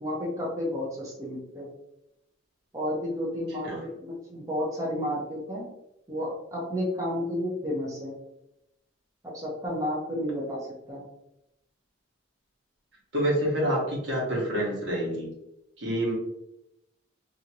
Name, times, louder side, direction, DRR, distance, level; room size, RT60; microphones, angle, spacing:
voice 1, 0.0-1.7 2.7-3.7 4.0-5.7 6.1-8.2 9.2-10.6 10.9-11.0, left 1 dB, 15° right, -6 dB, 0.6 m, -31 dB
voice 2, 13.1-15.3 15.8-16.1, right 1 dB, 65° right, -3 dB, 1.1 m, -27 dB
2.8 x 2.5 x 2.8 m, 0.85 s
head